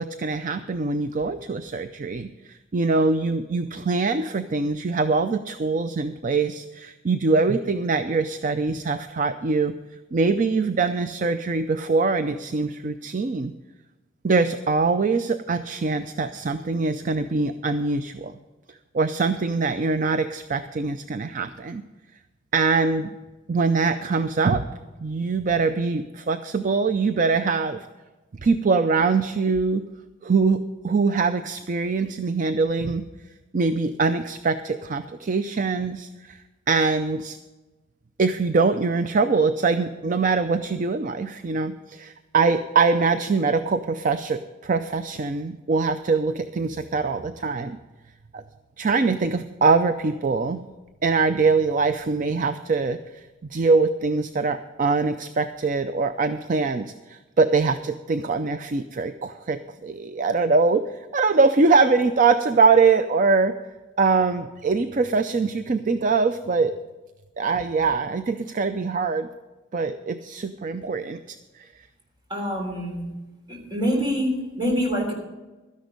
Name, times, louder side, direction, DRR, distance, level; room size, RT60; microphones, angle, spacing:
voice 1, 0.0-9.7 10.1-13.5 14.2-18.3 18.9-21.8 22.5-23.2 23.5-24.7 25.0-27.9 28.4-29.8 30.2-33.1 33.5-36.4 36.7-37.4 38.2-47.8 48.3-48.4 48.8-50.7 51.0-53.2 53.5-60.8 61.1-63.5 64.0-66.7 67.4-69.3 69.7-71.7, right 4 dB, 45° right, 10 dB, 0.4 m, -23 dB
voice 2, 72.3-73.1 73.5-75.1, equal, 25° right, 0 dB, 3.3 m, -25 dB
13.0 x 10.5 x 5.2 m, 1.1 s
head